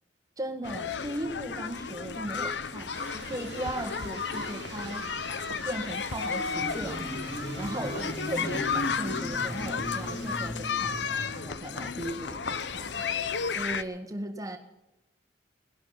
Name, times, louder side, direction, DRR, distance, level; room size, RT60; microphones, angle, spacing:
voice 1, 0.4-5.1 5.6-7.2 7.6-13.2 13.5-14.6, right 1 dB, 20° right, 3 dB, 1.7 m, -37 dB
sound 1, 0.6-13.8, left 5 dB, 75° left, 0.8 m, -33 dB
sound 2, 2.9-10.5, right 4 dB, 75° right, 1.4 m, -45 dB
Marimba xylophone, 6.2-11.3, right 1 dB, 10° left, 4.3 m, -38 dB
20.5 x 11.0 x 5.8 m, 0.99 s
head